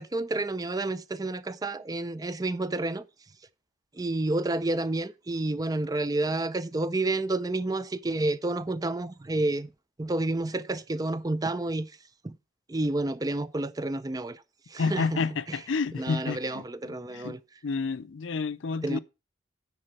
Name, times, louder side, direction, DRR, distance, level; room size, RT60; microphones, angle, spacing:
voice 1, 0.0-3.0 3.9-9.7 10.0-11.9 12.2-12.4 12.7-14.4 14.7-15.2 15.5-15.6 15.9-17.4 18.8-19.0, right 2 dB, 20° right, 0.4 m, -30 dB
voice 2, 14.8-16.6 17.1-17.4 17.6-19.0, left 4 dB, 85° left, 0.5 m, -29 dB
9.7 x 4.4 x 6.4 m
head